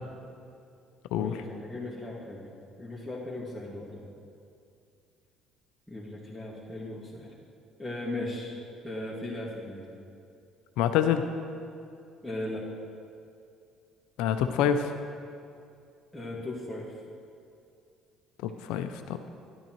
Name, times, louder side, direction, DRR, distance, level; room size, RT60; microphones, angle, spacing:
voice 1, 1.1-2.4 2.8-4.0 5.9-7.3 7.8-8.6 8.8-9.8 12.2-12.6 16.1-16.8, left 1 dB, ahead, -8 dB, 1.8 m, -37 dB
voice 2, 10.8-11.2 14.2-14.9 18.4-19.3, left 9 dB, 80° left, 8 dB, 0.4 m, -26 dB
12.0 x 10.5 x 3.0 m, 2.5 s
supercardioid pair, 70°, 0 cm